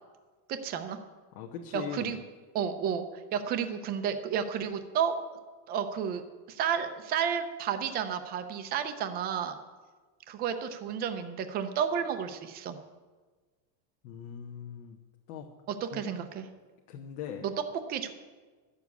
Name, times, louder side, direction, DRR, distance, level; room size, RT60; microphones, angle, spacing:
voice 1, 0.5-1.0 1.7-2.2 2.5-5.1 5.7-9.6 10.3-12.8 15.8-16.5 17.4-17.5 17.9-18.1, right 8 dB, 20° right, 8 dB, 0.4 m, -32 dB
voice 2, 1.3-2.2 14.0-15.0 15.3-15.5 15.9-16.1 16.9-17.5, left 8 dB, 70° left, 1 dB, 1.3 m, -40 dB
13.0 x 7.1 x 8.3 m, 1.4 s
cardioid pair, 175°, 49 cm